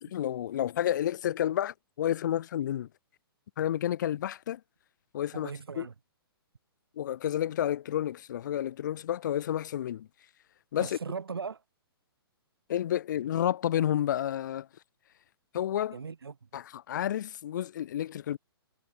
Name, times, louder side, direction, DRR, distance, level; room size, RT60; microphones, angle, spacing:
voice 1, 0.0-2.9 3.6-4.6 5.1-5.5 5.8-5.9 7.0-10.1 10.7-11.0 12.7-14.7 15.5-16.0 16.5-18.4, left 11 dB, 50° left, 0.4 m, -30 dB
voice 2, 5.3-5.9 10.8-11.6 15.9-16.5, right 5 dB, 70° right, 5.2 m, -38 dB
figure-of-eight pair, 120°, 13 cm